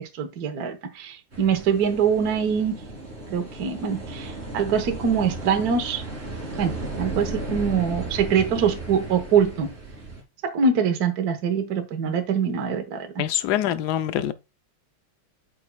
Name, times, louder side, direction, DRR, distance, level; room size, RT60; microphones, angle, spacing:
voice 1, 0.0-2.8 3.3-6.0 6.6-9.7 10.4-13.1, right 6 dB, 55° right, 1.4 m, -24 dB
sound 1, 1.3-10.2, right 2 dB, 30° right, 2.3 m, -35 dB
voice 2, 13.2-14.3, left 11 dB, 75° left, 0.9 m, -24 dB
8.4 x 6.2 x 2.3 m
omnidirectional pair, 2.3 m